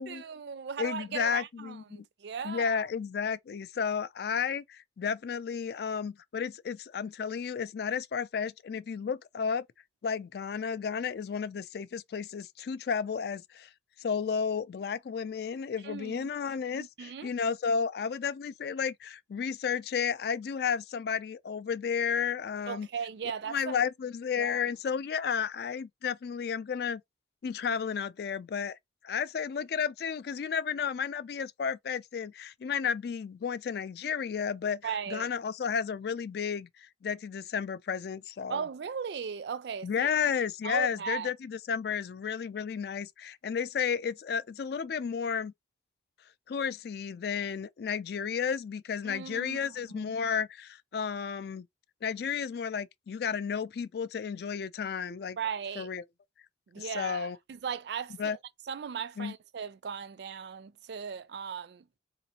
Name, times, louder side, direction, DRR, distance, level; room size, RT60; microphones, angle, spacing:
voice 1, 0.0-2.8 15.8-16.3 16.8-17.3 22.7-23.8 24.4-24.6 34.8-35.3 38.5-40.1 40.6-41.3 49.0-50.1 55.4-55.9 56.7-58.4 58.7-62.0, right 6 dB, 65° right, 0.4 m, -37 dB
voice 2, 0.8-2.0 2.4-9.7 10.0-13.7 14.0-22.9 23.5-27.0 27.4-28.8 29.0-34.8 35.1-38.6 39.8-45.5 46.5-51.7 52.0-55.4 55.8-56.0 56.8-57.4 58.2-58.4 59.2-59.3, left 6 dB, 55° left, 0.3 m, -32 dB
3.9 x 2.6 x 2.8 m
head